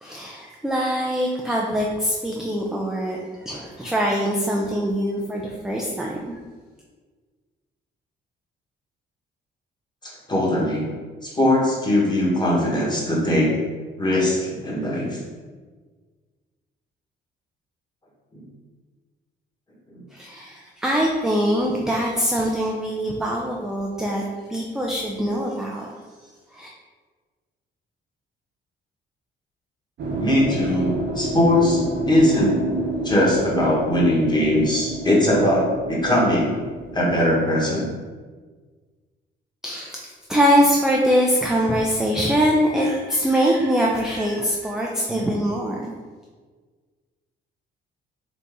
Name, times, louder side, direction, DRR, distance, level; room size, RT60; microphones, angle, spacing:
voice 1, 0.0-6.4 20.1-25.9 26.5-26.7 39.6-45.9, equal, 5° right, -2 dB, 0.4 m, -23 dB
voice 2, 10.3-10.9 11.2-13.5 14.0-15.2 19.9-20.0 30.2-32.6 33.0-36.6 36.9-37.9 45.1-45.2, left 1 dB, 20° left, -4 dB, 1.3 m, -20 dB
sound 1, 30.0-37.5, right 2 dB, 65° right, 0.9 m, -29 dB
4.1 x 2.7 x 3.5 m, 1.5 s
cardioid pair, 90°, 20 cm